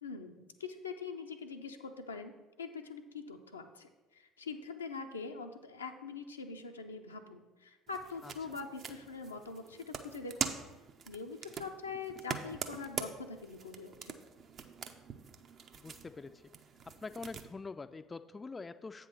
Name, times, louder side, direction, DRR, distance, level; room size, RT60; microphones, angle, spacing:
voice 1, 0.0-2.3 2.6-10.6 11.1-14.2, left 4 dB, 85° left, 5 dB, 0.5 m, -43 dB
sound 1, 7.9-17.5, right 6 dB, 45° right, 0.6 m, -44 dB
voice 2, 15.8-16.4 16.8-19.1, left 4 dB, 25° left, 11 dB, 0.3 m, -45 dB
8.0 x 3.8 x 6.4 m, 1.1 s
figure-of-eight pair, 55°, 0 cm